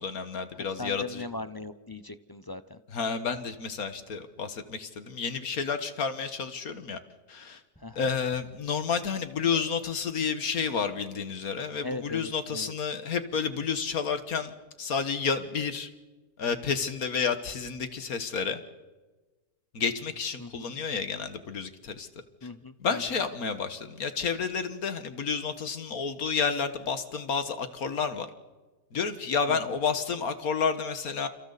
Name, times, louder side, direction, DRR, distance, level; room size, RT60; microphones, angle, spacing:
voice 1, 0.0-1.3 2.9-7.0 7.3-7.6 8.0-14.5 14.8-15.9 16.4-18.6 19.7-22.1 22.8-28.3 28.9-31.3, left 6 dB, 70° left, 9 dB, 1.9 m, -30 dB
voice 2, 0.8-2.8 7.8-8.1 11.8-12.7 20.4-20.8 22.4-23.0 29.5-29.6, left 2 dB, 30° left, 11 dB, 0.4 m, -39 dB
sound 1, 3.9-4.0 5.0-5.1 5.4-5.5 5.9-6.0 7.7-8.4 8.9-9.0 9.5-9.7 10.6-10.7 10.9-11.0, equal, 5° left, 6.7 m, -53 dB
30.0 x 29.0 x 4.1 m, 1.2 s
omnidirectional pair, 1.6 m